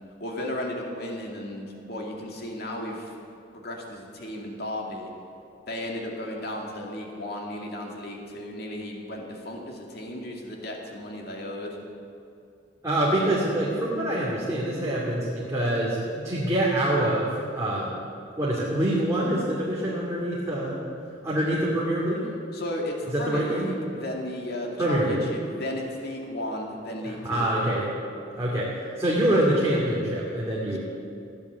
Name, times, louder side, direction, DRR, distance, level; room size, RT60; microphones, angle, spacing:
voice 1, 0.2-3.1 3.5-5.1 5.7-11.8 22.5-27.5 30.7-30.8, left 1 dB, 55° left, 0 dB, 2.4 m, -34 dB
voice 2, 12.8-17.3 17.5-18.0 18.4-20.8 21.2-22.3 23.1-23.7 24.8-25.2 27.0-27.8 28.4-30.8, right 1 dB, 15° right, -7 dB, 2.7 m, -25 dB
15.5 x 10.5 x 8.3 m, 2.6 s
head